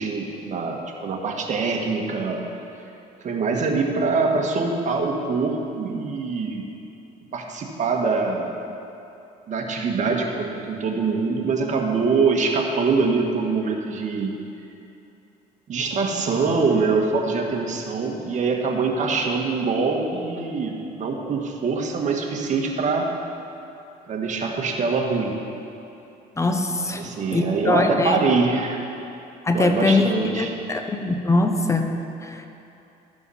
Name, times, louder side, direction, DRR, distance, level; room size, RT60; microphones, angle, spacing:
voice 1, 0.0-2.6 3.2-6.6 7.3-8.5 9.5-14.4 15.7-23.1 24.1-25.4 26.8-28.8 29.5-30.5, right 4 dB, 45° right, 1 dB, 1.5 m, -24 dB
voice 2, 26.4-28.2 29.4-30.1 30.4-32.5, left 2 dB, 15° left, 5 dB, 0.9 m, -22 dB
12.5 x 7.0 x 5.5 m, 2.8 s
cardioid pair, 110°, 17 cm